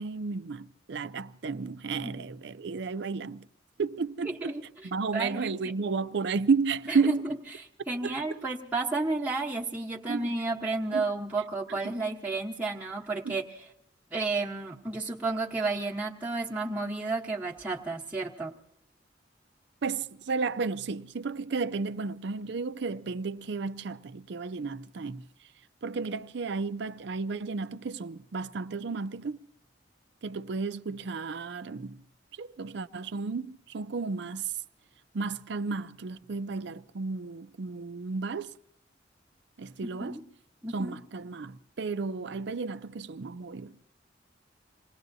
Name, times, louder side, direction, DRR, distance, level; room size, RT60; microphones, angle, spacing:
voice 1, 0.0-3.5 3.8-4.6 4.8-7.3 8.0-8.4 10.1-10.3 10.9-11.0 11.7-11.9 13.2-13.4 19.8-25.2 25.8-29.5 30.2-32.0 32.4-34.5 35.1-38.6 39.6-40.2 40.7-43.8, right 4 dB, 65° right, 0.5 m, -32 dB
voice 2, 5.1-5.5 6.9-7.0 7.9-13.4 14.1-18.5 40.0-40.2 40.6-40.9, right 3 dB, 10° right, 1.0 m, -32 dB
27.0 x 19.0 x 2.7 m
head